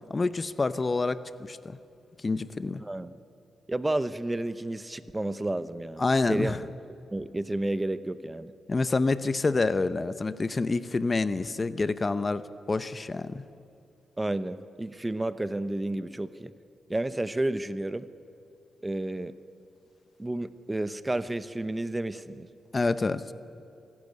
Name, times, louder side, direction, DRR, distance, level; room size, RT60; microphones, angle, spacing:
voice 1, 0.1-1.8 2.2-2.8 6.0-6.6 8.7-12.4 12.7-13.4 22.7-23.2, left 3 dB, 30° left, 14 dB, 0.8 m, -27 dB
voice 2, 2.8-3.2 3.7-6.0 6.3-6.6 7.1-8.5 14.2-16.5 16.9-18.1 18.8-19.3 20.2-22.5, right 1 dB, 15° right, 14 dB, 0.8 m, -31 dB
26.0 x 12.0 x 9.6 m, 2.7 s
cardioid pair, 80°, 0 cm